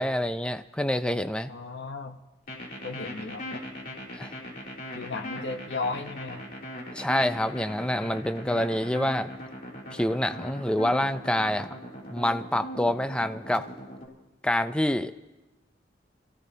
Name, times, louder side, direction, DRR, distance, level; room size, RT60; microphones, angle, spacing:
voice 1, 0.0-1.5 4.1-4.3 6.9-9.3 9.9-11.7 12.1-13.7 14.4-15.1, left 1 dB, 5° left, 10 dB, 0.4 m, -27 dB
voice 2, 1.5-2.2 2.8-3.6 4.9-6.4, left 3 dB, 70° left, 7 dB, 0.9 m, -35 dB
sound 1, 2.5-14.1, equal, 50° left, 2.9 m, -39 dB
27.5 x 15.0 x 2.8 m, 1.1 s
head